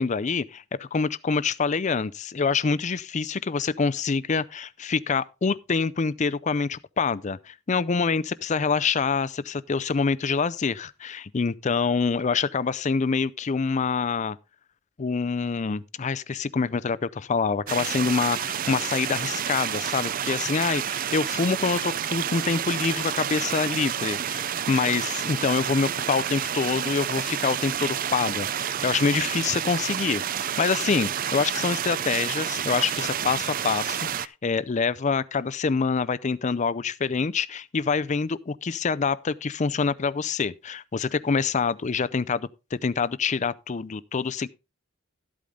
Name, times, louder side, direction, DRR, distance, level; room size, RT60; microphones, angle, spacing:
voice 1, 0.0-14.4 15.0-44.5, left 5 dB, 35° left, 0.5 m, -26 dB
sound 1, 17.7-34.3, right 9 dB, 45° right, 0.4 m, -29 dB
13.0 x 8.5 x 3.6 m
head